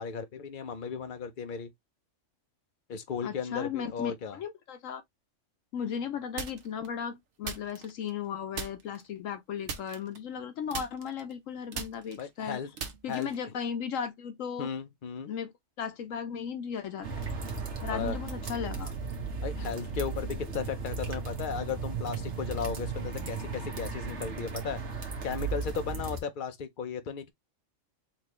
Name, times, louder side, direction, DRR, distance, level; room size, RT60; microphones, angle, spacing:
voice 1, 0.0-1.7 2.9-4.4 12.2-12.7 13.1-13.5 14.6-15.3 17.9-18.2 19.4-24.8 25.2-27.3, left 6 dB, 45° left, 0.8 m, -35 dB
voice 2, 3.2-5.0 5.7-12.6 13.0-14.7 15.3-15.5 15.8-17.2 17.8-18.9, left 7 dB, 80° left, 1.2 m, -36 dB
Mysounds LG-FR Ewan- measuring instrument and plastic bag, 6.4-6.9 7.4-8.3 8.5-9.1 9.6-10.4 10.7-13.5, right 5 dB, 85° right, 1.3 m, -40 dB
sound 1, 17.0-26.2, right 4 dB, 60° right, 1.5 m, -36 dB
4.2 x 3.3 x 3.0 m
omnidirectional pair, 1.4 m